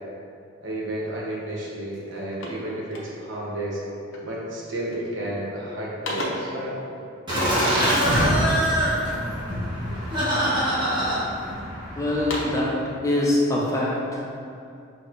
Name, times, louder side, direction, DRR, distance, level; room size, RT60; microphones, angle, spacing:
voice 1, 0.6-3.8 4.2-6.7, right 1 dB, 65° right, -4 dB, 0.9 m, -31 dB
sound 1, 1.5-1.6 1.9-3.5 4.1-4.4 4.8-5.3 5.6-6.6 8.1-9.3 9.9-10.5 11.0-11.7 12.0-12.7, left 1 dB, 80° left, 0.7 m, -36 dB
Laughter, 7.3-12.4, equal, 25° right, 1.0 m, -23 dB
voice 2, 11.9-14.2, left 1 dB, 15° left, -4 dB, 0.5 m, -24 dB
6.2 x 2.9 x 2.5 m, 2.5 s
head